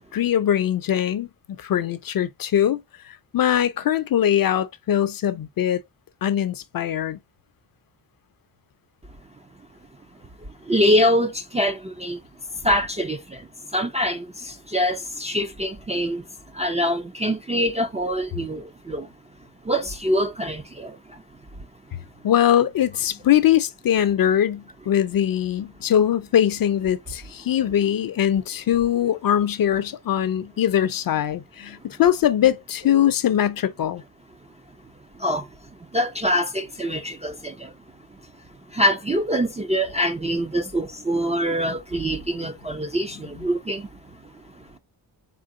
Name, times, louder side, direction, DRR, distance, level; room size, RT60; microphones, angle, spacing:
voice 1, 0.0-2.8 3.0-5.8 6.2-7.2 22.2-34.0 43.4-43.5, left 10 dB, 55° left, 0.5 m, -22 dB
voice 2, 10.6-12.2 12.6-16.2 16.5-19.1 19.6-21.2 35.1-35.5 35.8-37.7 38.7-44.7, equal, 15° right, 0.3 m, -24 dB
3.8 x 3.7 x 2.5 m
wide cardioid pair, 145°, 44 cm